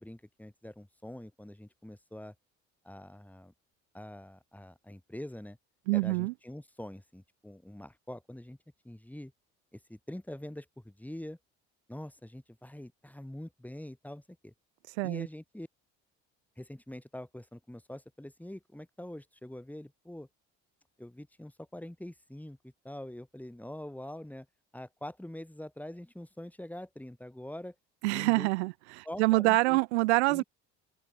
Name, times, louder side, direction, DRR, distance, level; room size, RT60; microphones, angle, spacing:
voice 1, 0.0-2.3 2.8-3.5 3.9-5.6 5.9-8.6 8.8-9.3 9.7-11.4 11.9-14.5 15.0-15.7 16.6-20.3 21.0-24.5 24.7-27.7 28.1-28.5 29.1-29.8 30.3-30.4, left 1 dB, 5° left, 7.5 m, -44 dB
voice 2, 5.9-6.3 15.0-15.3 28.0-30.4, right 23 dB, 85° right, 2.2 m, -26 dB
open air
hypercardioid pair, 70°, 33 cm